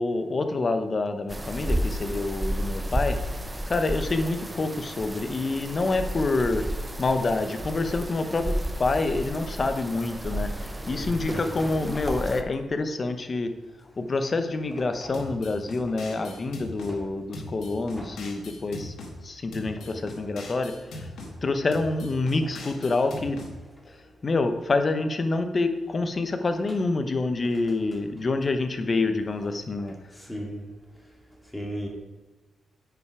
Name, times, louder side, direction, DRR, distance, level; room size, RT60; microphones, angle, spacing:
voice 1, 0.0-3.2 3.7-6.6 7.0-8.5 8.8-13.5 14.0-18.9 19.2-21.1 21.4-23.4 24.2-29.9, left 3 dB, 40° left, 7 dB, 0.9 m, -27 dB
sound 1, 1.3-12.4, right 1 dB, 15° right, 0.7 m, -32 dB
voice 2, 10.7-11.4 12.1-12.2 15.0-15.1 16.2-16.3 16.9-17.0 18.0-18.1 19.8-19.9 30.2-30.6 31.5-31.9, equal, 10° left, -1 dB, 2.3 m, -35 dB
sound 2, 15.1-16.9 17.3-19.1 19.5-21.3 21.7-23.5, left 2 dB, 80° left, 1.9 m, -40 dB
9.2 x 5.8 x 4.8 m, 1.1 s
cardioid pair, 95°, 0 cm